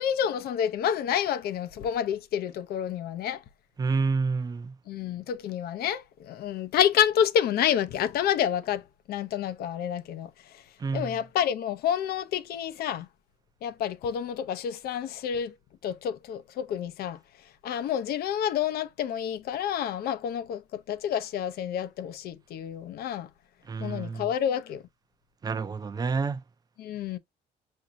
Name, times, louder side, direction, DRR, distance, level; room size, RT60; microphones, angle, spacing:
voice 1, 0.0-3.4 4.9-10.6 10.9-13.1 13.6-15.6 15.8-23.3 23.8-24.8 26.8-27.2, left 9 dB, 65° left, 0.6 m, -29 dB
voice 2, 3.8-4.7 10.8-11.1 23.7-24.3 25.4-26.4, right 4 dB, 25° right, 0.5 m, -29 dB
6.0 x 2.7 x 2.8 m
cardioid pair, 110°, 17 cm